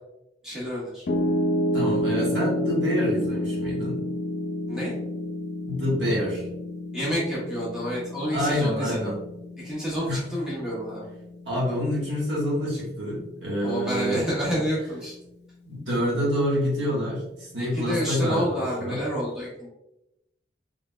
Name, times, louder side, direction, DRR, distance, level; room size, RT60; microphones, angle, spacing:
voice 1, 0.4-1.0 4.7-4.9 6.1-6.2 6.9-9.1 9.6-11.0 13.6-15.1 17.7-19.7, equal, 5° right, -8 dB, 1.3 m, -29 dB
Piano, 1.1-13.2, equal, 60° left, 0.4 m, -30 dB
voice 2, 1.7-4.0 5.7-6.5 8.3-9.2 10.1-10.2 11.4-14.2 14.5-14.6 15.6-19.0, equal, 85° right, -5 dB, 1.5 m, -27 dB
3.7 x 3.5 x 2.2 m, 0.89 s
head